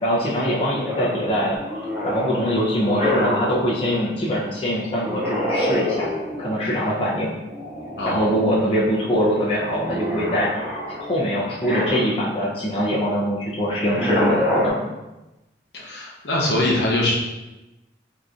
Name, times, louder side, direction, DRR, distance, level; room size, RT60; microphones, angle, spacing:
voice 1, 0.0-1.6 2.0-6.1 6.4-7.3 8.1-10.5 10.9-14.8, equal, 30° left, -6 dB, 0.6 m, -23 dB
sound 1, 0.8-3.7 5.0-6.6 7.5-8.5 8.9-12.4 13.7-14.7, left 1 dB, 10° right, 0.5 m, -27 dB
voice 2, 8.0-8.3 15.7-17.1, left 1 dB, 75° left, -3 dB, 0.7 m, -22 dB
3.6 x 2.9 x 2.5 m, 1.0 s
head